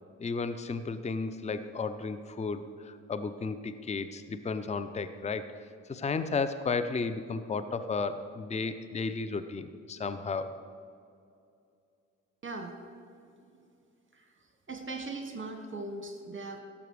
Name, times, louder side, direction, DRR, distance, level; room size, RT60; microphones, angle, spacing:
voice 1, 0.2-5.5 5.9-10.5, left 4 dB, 15° left, 12 dB, 0.7 m, -33 dB
voice 2, 12.4-12.7 13.5-13.6 14.1-14.3 14.7-16.6, right 3 dB, 30° right, 5 dB, 1.5 m, -39 dB
16.5 x 7.2 x 4.8 m, 2.5 s
figure-of-eight pair, 45°, 40 cm